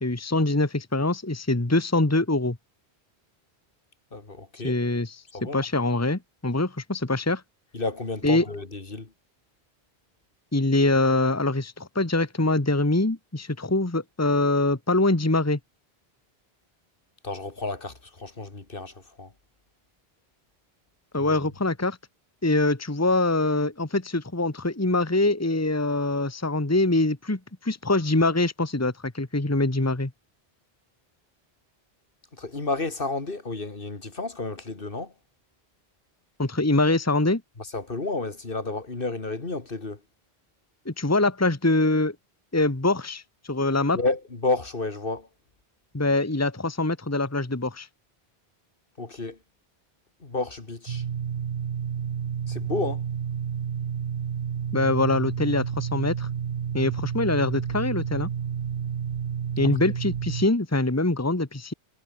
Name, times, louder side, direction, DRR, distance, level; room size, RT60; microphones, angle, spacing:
voice 1, 0.0-2.6 4.6-5.2 5.5-7.4 8.2-8.4 10.5-15.6 21.1-22.0 22.4-30.1 36.4-37.4 40.8-42.1 42.5-43.2 43.5-44.0 45.9-47.9 54.7-56.3 56.7-58.3 59.6-61.7, left 2 dB, 15° left, 1.5 m, -24 dB
voice 2, 4.1-4.8 5.3-5.6 7.7-9.1 17.2-19.3 21.2-21.3 32.4-35.1 37.7-40.0 43.9-45.3 49.0-49.4 50.2-51.0 52.5-53.0, left 3 dB, 60° left, 2.6 m, -31 dB
sound 1, 50.9-60.5, right 8 dB, 65° right, 1.1 m, -30 dB
omnidirectional pair, 1.1 m